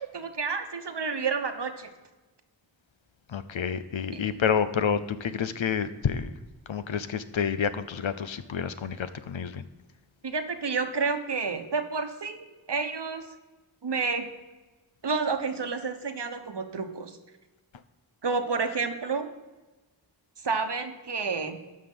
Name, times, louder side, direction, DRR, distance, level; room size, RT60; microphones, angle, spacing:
voice 1, 0.1-1.9 4.1-4.2 10.2-13.2 13.8-14.3 15.0-17.2 18.2-19.3 20.4-21.6, right 4 dB, 60° right, 7 dB, 1.1 m, -30 dB
voice 2, 3.3-6.3 6.7-9.6, left 7 dB, 75° left, 13 dB, 0.7 m, -29 dB
13.0 x 5.1 x 5.5 m, 1.2 s
wide cardioid pair, 45°, 47 cm